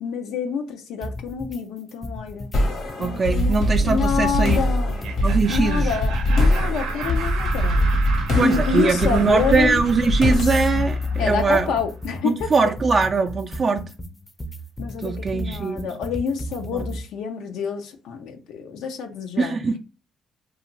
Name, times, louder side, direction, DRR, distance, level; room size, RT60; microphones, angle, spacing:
voice 1, 0.0-2.5 3.0-5.0 5.5-7.8 8.3-9.8 11.2-12.7 14.8-19.6, left 6 dB, 85° left, 0.5 m, -27 dB
sound 1, 1.0-1.6 1.9-2.6 2.9-5.6 5.9-17.0, equal, 15° left, 0.5 m, -35 dB
sound 2, 2.5-12.0, left 1 dB, 65° left, 0.9 m, -23 dB
voice 2, 3.0-4.6 5.2-5.9 8.4-11.7 12.2-13.9 15.0-15.9 16.7-16.9 19.4-19.8, right 4 dB, 40° right, 0.3 m, -22 dB
Laughter, 4.8-11.6, right 5 dB, 85° right, 0.5 m, -35 dB
2.4 x 2.4 x 3.0 m
supercardioid pair, 75°, 0 cm